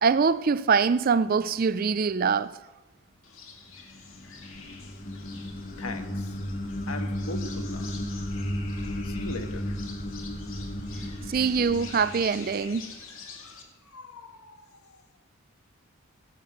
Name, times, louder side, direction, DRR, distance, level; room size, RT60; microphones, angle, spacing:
voice 1, 0.0-2.5 11.0-12.9, right 5 dB, 40° right, 0.4 m, -24 dB
sound 1, 3.2-13.6, left 5 dB, 70° left, 2.4 m, -47 dB
sound 2, 3.7-13.0, equal, 35° left, 1.2 m, -34 dB
voice 2, 5.8-6.4 6.9-7.9 8.7-9.9 10.9-11.7 13.1-15.0, left 2 dB, 85° left, 1.5 m, -42 dB
16.0 x 8.4 x 7.9 m
head